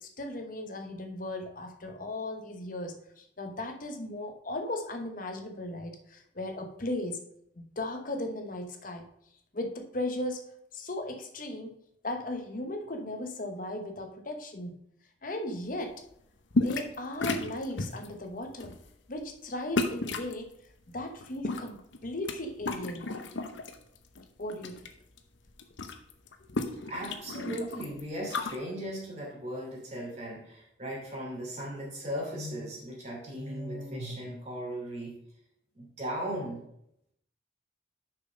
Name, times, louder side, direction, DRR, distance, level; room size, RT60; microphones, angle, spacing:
voice 1, 0.0-7.2 7.6-9.0 9.5-11.7 12.0-14.7 15.2-15.9 16.6-18.7 19.1-20.5 20.9-23.1 24.4-24.8 26.5-26.9, left 1 dB, 45° left, 5 dB, 1.0 m, -37 dB
sound 1, 16.5-17.0 17.2-18.1 18.6-18.8 19.8-20.3 21.2-22.4 22.6-23.7 24.2-24.9 25.2-25.3 25.5-28.6, left 2 dB, 75° left, 0.8 m, -32 dB
voice 2, 26.8-35.1 35.7-36.6, equal, 35° right, -3 dB, 2.9 m, -37 dB
6.7 x 5.9 x 5.4 m, 0.75 s
head